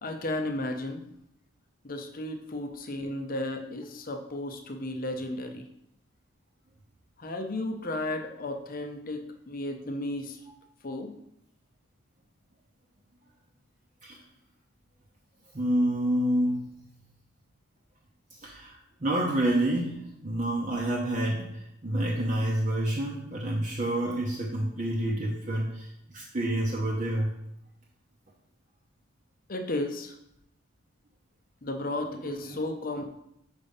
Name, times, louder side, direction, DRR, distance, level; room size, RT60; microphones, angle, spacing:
voice 1, 0.0-1.0 1.8-5.7 7.2-10.4 10.8-11.1 29.5-30.1 31.6-33.0, left 1 dB, 45° left, 6 dB, 0.7 m, -34 dB
voice 2, 15.5-16.8 18.3-27.3 32.1-32.6, right 1 dB, 35° right, -3 dB, 0.8 m, -28 dB
5.4 x 5.0 x 5.4 m, 0.79 s
head